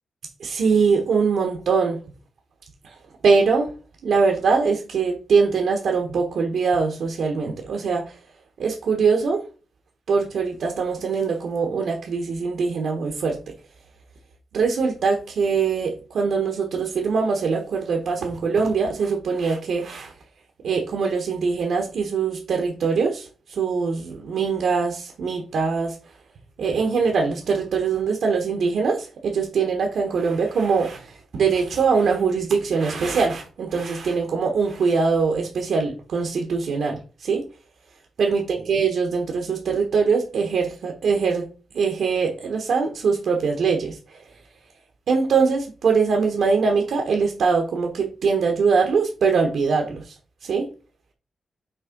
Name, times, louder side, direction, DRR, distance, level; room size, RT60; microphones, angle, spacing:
voice 1, 0.4-2.0 3.2-3.7 4.0-8.1 8.6-9.4 10.1-13.4 14.5-20.1 20.6-26.0 26.6-37.4 38.2-41.5 41.7-44.2 45.1-50.1 50.4-50.7, right 5 dB, 75° right, 1.3 m, -22 dB
6.4 x 3.5 x 5.2 m
wide cardioid pair, 120°, 0 cm